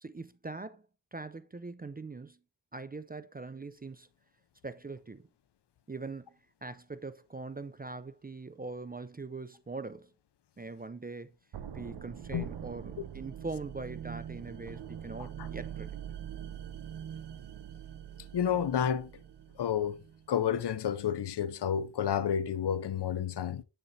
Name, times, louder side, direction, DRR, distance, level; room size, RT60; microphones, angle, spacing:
voice 1, 0.0-0.9 1.1-2.4 2.7-4.1 4.6-5.3 5.9-6.4 6.6-10.1 10.6-11.3 11.7-15.9, right 3 dB, 25° right, 0.3 m, -42 dB
sound 1, 11.5-20.4, right 9 dB, 70° right, 0.6 m, -43 dB
voice 2, 18.3-19.1 19.6-20.0 20.3-23.6, left 8 dB, 70° left, 0.5 m, -30 dB
7.0 x 6.9 x 2.6 m
wide cardioid pair, 75°, 42 cm